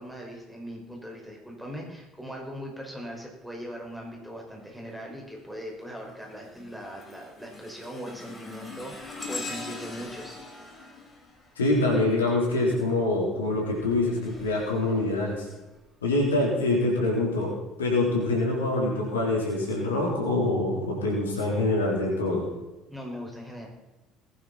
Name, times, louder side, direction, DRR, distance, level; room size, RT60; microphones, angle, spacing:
voice 1, 0.0-10.4 22.9-23.7, equal, 5° right, -1 dB, 5.2 m, -40 dB
sound 1, 4.6-5.0 5.5-12.3 13.6-15.8 16.4-16.6 17.5-17.6, left 3 dB, 25° left, 4.7 m, -43 dB
voice 2, 11.6-15.5 16.0-17.5 17.8-22.5, left 2 dB, 80° left, -2 dB, 3.8 m, -25 dB
20.0 x 11.0 x 4.2 m, 1.1 s
figure-of-eight pair, 60°, 0 cm